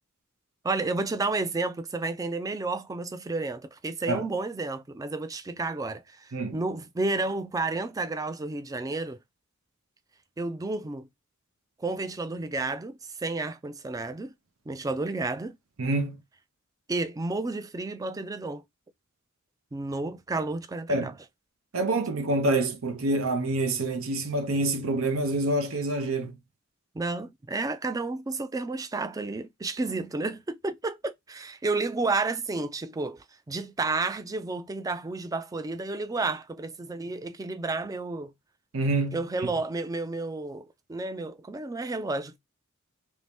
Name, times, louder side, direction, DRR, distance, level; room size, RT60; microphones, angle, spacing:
voice 1, 0.6-9.2 10.4-11.1 11.8-14.3 14.7-15.6 16.9-18.6 19.7-21.1 26.9-38.3 39.1-42.4, right 3 dB, 15° right, 0.3 m, -31 dB
voice 2, 15.8-16.2 20.9-21.1 21.7-26.3 38.7-39.2, right 2 dB, 75° right, 0.6 m, -26 dB
3.0 x 2.7 x 3.4 m
head